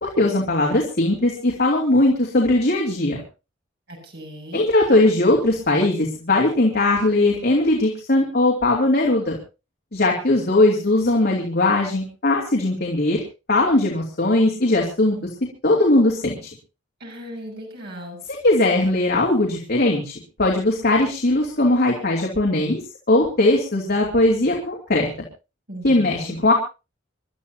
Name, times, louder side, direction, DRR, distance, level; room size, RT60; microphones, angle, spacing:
voice 1, 0.0-3.2 4.5-9.3 9.9-13.2 13.5-15.2 15.6-16.5 18.4-20.1 20.4-22.8 23.1-25.1 25.8-26.5, left 2 dB, 55° left, -1 dB, 2.9 m, -19 dB
voice 2, 3.9-4.7 17.0-18.2 25.7-26.4, equal, 60° right, 1 dB, 6.8 m, -37 dB
28.0 x 12.5 x 2.9 m, 0.30 s
head